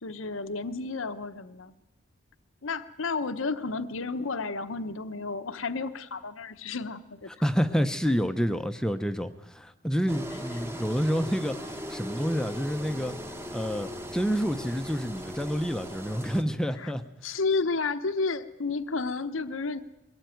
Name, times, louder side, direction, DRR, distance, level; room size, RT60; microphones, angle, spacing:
voice 1, 0.0-1.7 2.6-7.3 16.8-16.9 17.2-19.8, left 4 dB, 80° left, 10 dB, 0.9 m, -31 dB
voice 2, 7.4-13.1 13.5-17.0, equal, 5° left, 8 dB, 0.7 m, -28 dB
Engine, 10.1-16.4, equal, 10° right, 1.2 m, -39 dB
22.5 x 18.0 x 9.2 m, 0.95 s
head